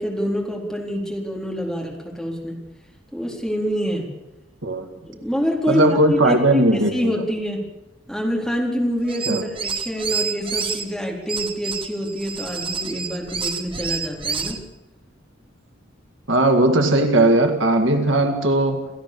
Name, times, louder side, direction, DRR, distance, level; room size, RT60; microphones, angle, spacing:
voice 1, 0.0-2.6 3.1-4.1 5.1-7.6 8.1-14.6, equal, ahead, 4.0 m, -26 dB
voice 2, 5.7-7.1 9.3-9.4 16.3-18.9, right 1 dB, 70° right, 2.1 m, -18 dB
sound 1, 9.0-10.8 11.3-14.6, right 5 dB, 25° right, 1.7 m, -28 dB
28.0 x 15.5 x 7.0 m
head